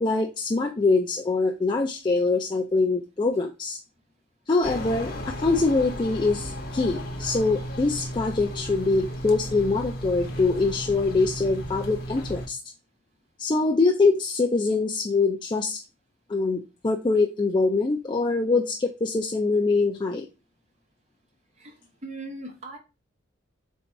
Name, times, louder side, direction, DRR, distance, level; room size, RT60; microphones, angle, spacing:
voice 1, 0.0-3.8 4.5-5.1 5.4-12.6 13.4-15.8 16.3-20.3, left 3 dB, 25° left, 1 dB, 0.4 m, -24 dB
sound 1, 4.6-12.5, equal, 50° left, 0.9 m, -34 dB
voice 2, 22.0-22.8, right 2 dB, 35° right, 1 dB, 1.2 m, -38 dB
3.9 x 2.7 x 4.5 m, 0.28 s
head